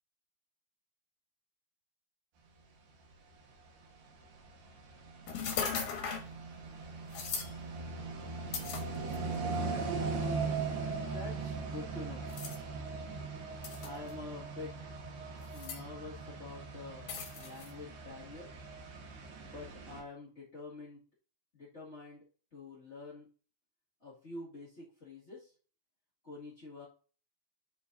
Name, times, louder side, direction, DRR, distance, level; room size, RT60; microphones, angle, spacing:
sound 1, 3.4-20.0, right 4 dB, 70° right, 3.2 m, -39 dB
sound 2, 5.3-6.3 7.1-7.5 8.5-9.4 10.1-10.2 12.3-12.6 13.6-14.1 15.4-15.8 17.1-17.7, left 6 dB, 65° left, 2.1 m, -38 dB
voice 1, 11.0-12.3 13.8-14.8 15.5-18.5 19.4-21.0 21.5-23.3 24.0-25.5 26.2-26.8, left 3 dB, 85° left, -7 dB, 0.6 m, -47 dB
12.0 x 4.0 x 2.7 m, 0.38 s
omnidirectional pair, 5.0 m